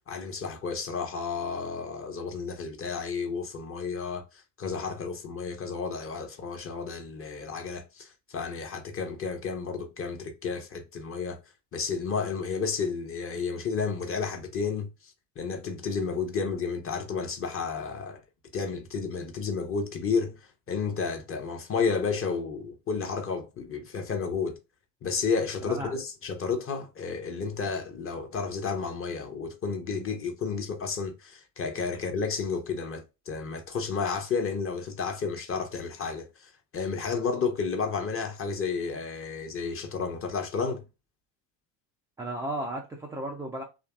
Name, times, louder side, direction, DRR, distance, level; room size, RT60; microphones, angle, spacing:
voice 1, 0.0-11.4 11.7-18.2 18.5-20.4 20.7-24.6 25.0-40.8, left 5 dB, 25° left, 0.7 m, -32 dB
voice 2, 25.6-25.9 42.2-43.6, right 1 dB, 5° right, 0.3 m, -34 dB
2.8 x 2.5 x 2.3 m
hypercardioid pair, 70°, 50 cm